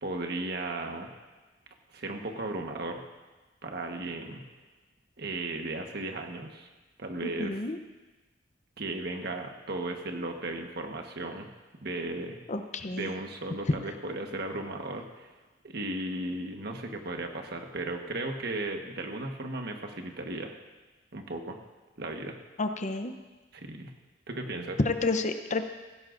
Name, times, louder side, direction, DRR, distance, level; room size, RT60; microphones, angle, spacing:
voice 1, 0.0-1.1 1.9-3.0 3.6-4.4 5.2-6.7 7.0-7.6 8.8-11.5 11.8-12.4 13.0-15.3 15.6-20.5 21.1-21.6 22.0-22.4 23.5-23.9 24.3-24.8, right 2 dB, 60° right, 3 dB, 1.4 m, -35 dB
voice 2, 7.4-7.8 12.5-13.1 13.7-13.8 22.6-23.1 24.8-25.7, left 3 dB, 40° left, 8 dB, 0.8 m, -30 dB
16.5 x 16.5 x 2.6 m, 1.2 s
head